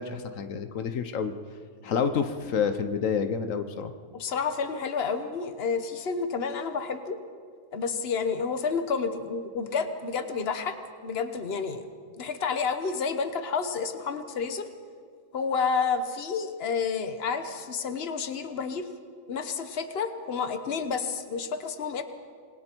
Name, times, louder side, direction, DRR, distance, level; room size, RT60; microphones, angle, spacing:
voice 1, 0.0-1.3 1.8-3.9, left 6 dB, 85° left, 8 dB, 1.3 m, -28 dB
voice 2, 4.1-7.2 7.7-10.8 11.0-11.8 12.2-14.7 15.3-18.9 19.3-22.0, left 5 dB, 50° left, 9 dB, 1.3 m, -30 dB
27.0 x 21.0 x 4.6 m, 2.1 s
omnidirectional pair, 1.3 m